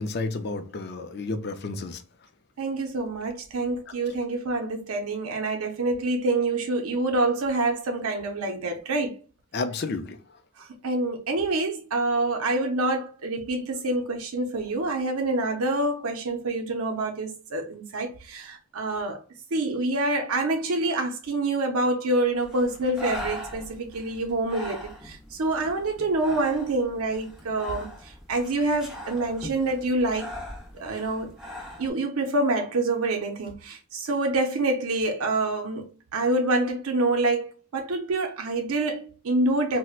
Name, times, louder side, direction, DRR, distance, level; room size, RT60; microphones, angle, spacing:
voice 1, 0.0-2.0 9.5-10.2, left 3 dB, 50° left, 0.4 m, -31 dB
voice 2, 2.6-9.1 10.6-19.2 19.5-30.3 30.7-31.3 31.8-35.9 36.1-39.8, right 2 dB, 80° right, 0.5 m, -26 dB
Breathing, 22.4-31.9, left 1 dB, 5° right, 0.9 m, -41 dB
4.3 x 2.1 x 2.4 m
head